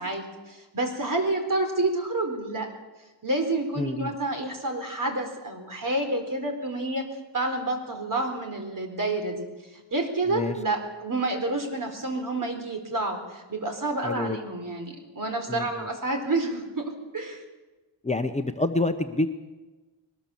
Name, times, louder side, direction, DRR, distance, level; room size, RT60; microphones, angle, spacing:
voice 1, 0.0-2.7 3.2-7.0 7.3-9.5 9.9-17.4, right 2 dB, 40° right, 5 dB, 4.2 m, -29 dB
voice 2, 3.8-4.1 10.3-10.6 14.0-14.4 15.5-15.7 18.0-19.3, left 2 dB, 15° left, 6 dB, 0.8 m, -27 dB
21.5 x 20.0 x 7.1 m, 1.2 s
wide cardioid pair, 125°, 47 cm